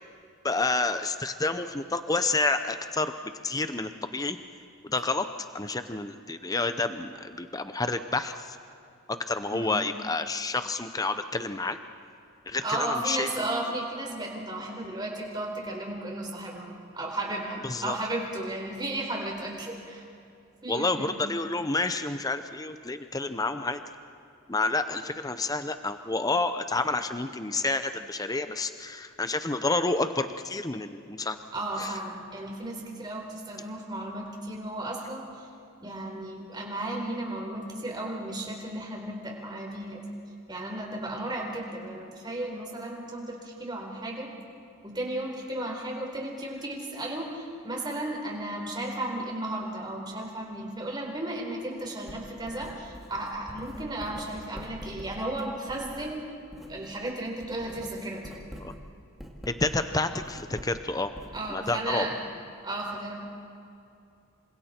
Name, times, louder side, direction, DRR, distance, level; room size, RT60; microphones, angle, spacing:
voice 1, 0.4-3.1 3.4-4.4 4.8-5.3 5.5-8.6 9.3-11.8 12.5-13.3 17.6-18.0 20.7-23.8 24.5-31.4 31.8-31.9 58.6-58.7 59.5-61.1 61.5-62.1, left 3 dB, 15° left, 9 dB, 0.7 m, -29 dB
voice 2, 9.5-9.9 12.6-20.0 20.6-21.2 31.5-35.5 35.8-40.0 40.5-44.3 44.8-56.2 56.7-58.3 61.3-62.2 62.6-63.1, right 1 dB, 20° right, 0 dB, 4.1 m, -34 dB
Writing, 52.0-57.0 57.3-61.9, equal, ahead, 2.2 m, -45 dB
28.0 x 25.5 x 4.4 m, 2.5 s
head